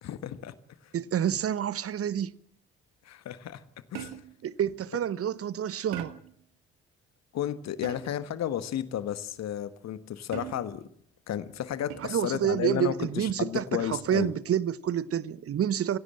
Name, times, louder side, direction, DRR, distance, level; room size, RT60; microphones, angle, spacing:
voice 1, 0.0-0.5 3.0-3.6 3.9-4.1 7.3-10.8 11.3-14.3, left 10 dB, 50° left, 1.4 m, -33 dB
voice 2, 0.9-2.3 4.4-6.1 12.1-16.0, right 9 dB, 40° right, 1.0 m, -28 dB
sound 1, 3.9-4.5 5.9-6.4 7.8-8.3 10.3-10.9 11.9-12.4 13.8-14.2, right 12 dB, 70° right, 1.6 m, -42 dB
25.5 x 16.5 x 7.6 m
figure-of-eight pair, 45°, 34 cm